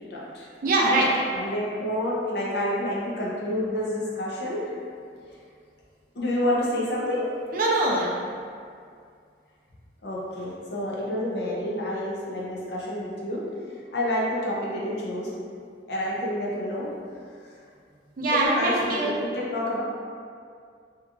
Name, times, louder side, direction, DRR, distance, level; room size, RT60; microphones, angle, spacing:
voice 1, 0.0-0.5 1.3-4.7 5.3-5.4 6.1-7.3 10.0-13.4 13.9-15.3 15.9-16.9 17.4-17.6 18.3-19.8, left 1 dB, 70° left, -5 dB, 0.6 m, -28 dB
voice 2, 0.6-1.2 7.5-8.1 18.2-19.2, right 2 dB, 50° right, -3 dB, 0.4 m, -23 dB
2.8 x 2.3 x 2.5 m, 2.2 s
head